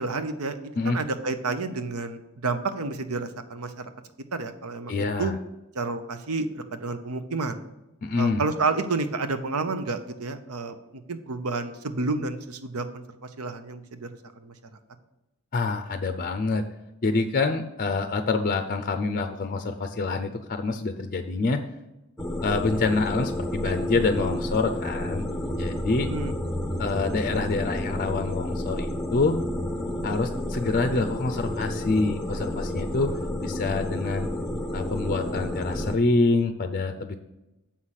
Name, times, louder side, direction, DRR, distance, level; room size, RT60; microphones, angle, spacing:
voice 1, 0.0-3.9 4.3-5.3 5.7-7.6 8.2-12.8 13.4-14.2 14.4-14.5 26.1-26.3, right 3 dB, 75° right, 9 dB, 0.8 m, -30 dB
voice 2, 4.9-5.4 8.0-8.4 15.5-16.6 17.0-21.6 22.4-25.3 25.6-26.1 26.8-29.4 30.0-33.1 33.4-34.3 34.7-37.2, left 3 dB, 40° left, 8 dB, 0.5 m, -26 dB
sound 1, 22.2-36.0, left 1 dB, ahead, 0.7 m, -30 dB
7.4 x 5.7 x 6.4 m, 0.97 s
head